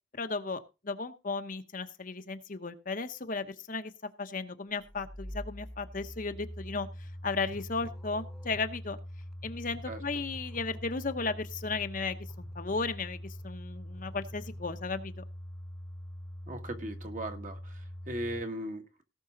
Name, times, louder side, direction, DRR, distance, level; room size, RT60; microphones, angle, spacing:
voice 1, 0.2-3.9 4.2-9.0 9.4-15.2, left 4 dB, 45° left, 8 dB, 0.9 m, -35 dB
sound 1, 4.8-18.4, equal, ahead, 1.2 m, -43 dB
voice 2, 16.5-19.0, right 1 dB, 45° right, 5 dB, 1.8 m, -38 dB
18.0 x 6.3 x 3.9 m, 0.28 s
head